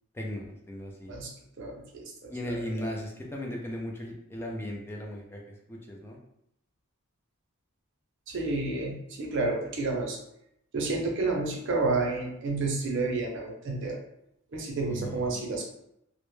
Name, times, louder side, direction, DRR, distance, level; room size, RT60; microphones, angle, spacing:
voice 1, 0.1-1.1 2.3-5.4 5.7-6.2 14.9-15.5, left 1 dB, 10° left, -1 dB, 0.3 m, -37 dB
voice 2, 1.6-2.5 2.8-2.9 8.3-10.2 10.7-14.0 14.5-15.6, right 3 dB, 60° right, 0 dB, 0.5 m, -30 dB
2.1 x 2.0 x 3.0 m, 0.78 s
head